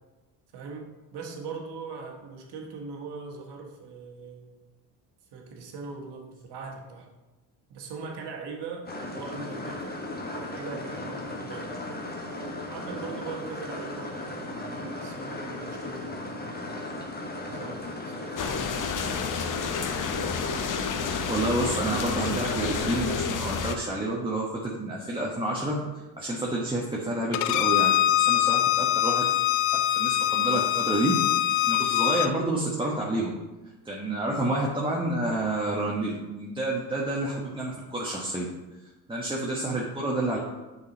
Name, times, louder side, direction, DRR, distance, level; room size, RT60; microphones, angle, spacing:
voice 1, 0.5-4.5 5.3-7.1 7.7-10.0 10.3-11.8 12.7-17.0 17.5-19.4, right 4 dB, 60° right, 1 dB, 1.6 m, -41 dB
sound 1, 8.9-23.0, left 2 dB, 20° left, 1.4 m, -36 dB
sound 2, 18.4-23.7, left 6 dB, 45° left, 0.8 m, -30 dB
voice 2, 21.3-25.8 26.2-29.2 29.9-31.2 31.5-33.4 33.8-38.4 39.1-40.4, right 1 dB, 10° right, -4 dB, 1.3 m, -29 dB
Bowed string instrument, 27.3-32.3, left 13 dB, 70° left, 0.6 m, -23 dB
6.5 x 5.4 x 4.1 m, 1.1 s
hypercardioid pair, 65°, 45 cm